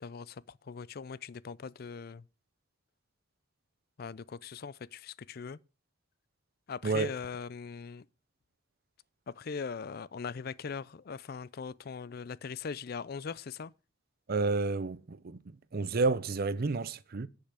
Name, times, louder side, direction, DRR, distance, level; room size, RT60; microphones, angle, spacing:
voice 1, 0.0-2.2 4.0-5.6 6.7-8.0 9.3-13.7, left 5 dB, 50° left, 0.4 m, -40 dB
voice 2, 14.3-17.3, right 3 dB, 50° right, 0.6 m, -30 dB
10.0 x 5.7 x 6.8 m
head